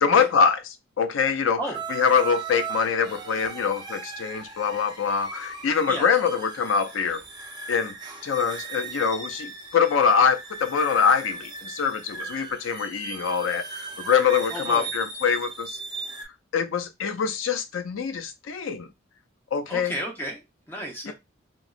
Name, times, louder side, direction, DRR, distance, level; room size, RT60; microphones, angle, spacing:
voice 1, 0.0-0.6 1.0-1.6 1.9-7.2 7.7-7.9 8.2-15.8 16.5-18.9 19.5-19.9 21.0-21.1, left 6 dB, 80° left, 0.4 m, -24 dB
sound 1, 1.7-16.2, right 5 dB, 20° right, 0.5 m, -38 dB
voice 2, 14.5-14.9 19.7-21.1, right 1 dB, 10° left, 0.9 m, -33 dB
3.1 x 2.5 x 2.4 m
head